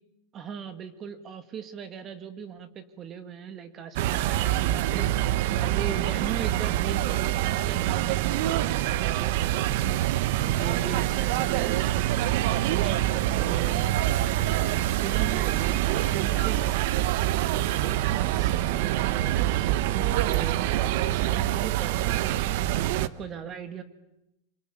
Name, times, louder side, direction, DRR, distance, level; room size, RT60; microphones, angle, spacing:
voice 1, 0.3-5.1 5.5-10.0 10.4-11.8 12.6-16.7 17.5-23.8, right 7 dB, 30° right, 10 dB, 1.9 m, -39 dB
sound 1, 4.0-23.1, right 14 dB, 60° right, 0.9 m, -25 dB
25.5 x 23.5 x 8.5 m, 0.88 s
supercardioid pair, 135°, 0 cm